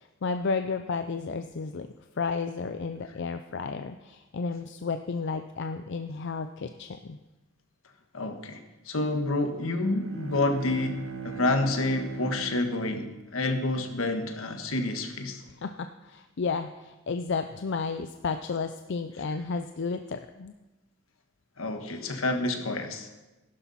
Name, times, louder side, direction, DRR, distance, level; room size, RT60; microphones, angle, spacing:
voice 1, 0.0-1.9 2.2-7.2 15.6-20.5, left 4 dB, 60° left, 8 dB, 0.5 m, -32 dB
voice 2, 8.1-15.4 21.6-23.1, left 2 dB, 80° left, 6 dB, 1.5 m, -29 dB
Bowed string instrument, 9.5-14.1, right 5 dB, 80° right, 1.5 m, -41 dB
15.0 x 11.5 x 4.2 m, 1.1 s
head